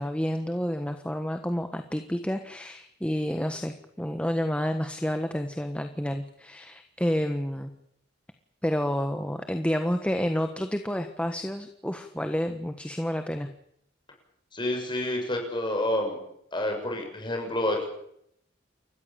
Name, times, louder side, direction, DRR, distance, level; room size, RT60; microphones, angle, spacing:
voice 1, 0.0-7.7 8.6-13.5, equal, 5° left, 7 dB, 1.3 m, -29 dB
voice 2, 14.5-16.2 16.5-17.9, left 1 dB, 25° left, 2 dB, 6.8 m, -28 dB
29.5 x 14.5 x 8.6 m, 0.73 s
head